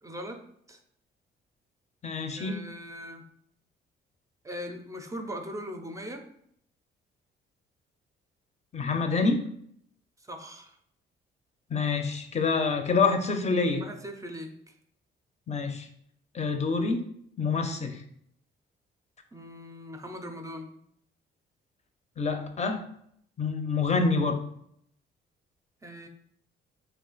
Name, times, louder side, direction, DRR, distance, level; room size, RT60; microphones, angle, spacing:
voice 1, 0.0-0.4 0.7-0.8 2.4-3.2 4.4-6.2 10.2-10.8 13.8-14.5 19.3-20.7 25.8-26.1, equal, 15° right, 5 dB, 0.5 m, -40 dB
voice 2, 2.0-2.6 8.7-9.4 11.7-13.9 15.5-15.9 16.3-17.0 17.4-18.0 22.2-22.8 23.4-24.4, left 4 dB, 35° left, 6 dB, 0.5 m, -27 dB
3.2 x 2.4 x 3.8 m, 0.70 s
cardioid pair, 90°, 20 cm